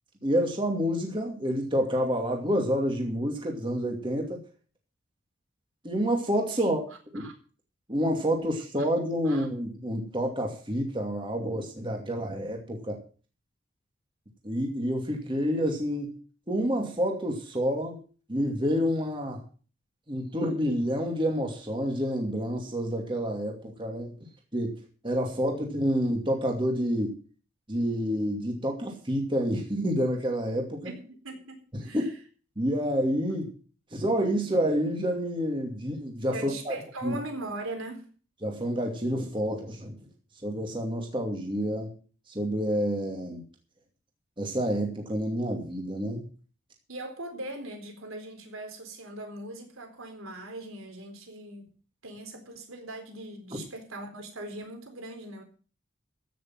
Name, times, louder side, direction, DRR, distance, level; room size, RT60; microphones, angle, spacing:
voice 1, 0.2-4.4 5.8-6.8 7.1-7.3 7.9-13.0 14.4-16.1 16.5-18.0 18.3-19.4 20.1-24.1 24.5-24.8 25.0-27.1 27.7-30.9 31.8-32.1 32.6-33.5 33.9-36.8 37.0-37.2 38.4-39.9 40.4-41.9 42.3-43.4 44.4-46.3, equal, 25° right, 1 dB, 2.5 m, -28 dB
voice 2, 30.8-32.1 36.3-38.1 46.9-51.7 52.0-55.4, right 2 dB, 85° right, 5 dB, 4.0 m, -40 dB
15.5 x 6.8 x 7.5 m, 0.39 s
head